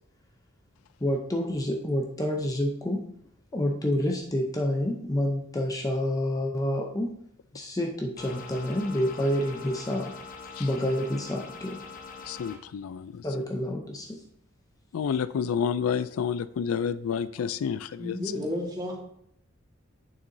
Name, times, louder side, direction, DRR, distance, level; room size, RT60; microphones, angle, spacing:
voice 1, 1.0-3.1 3.5-7.1 7.5-10.1 10.6-11.8 13.2-14.2, left 1 dB, 15° left, 0.6 m, -28 dB
sound 1, 8.2-12.6, left 5 dB, 40° left, 1.0 m, -43 dB
voice 2, 12.2-13.3 14.9-18.2, left 7 dB, 90° left, 0.4 m, -29 dB
voice 3, 18.0-19.0, left 1 dB, 20° right, 1.5 m, -32 dB
9.0 x 6.6 x 2.7 m
head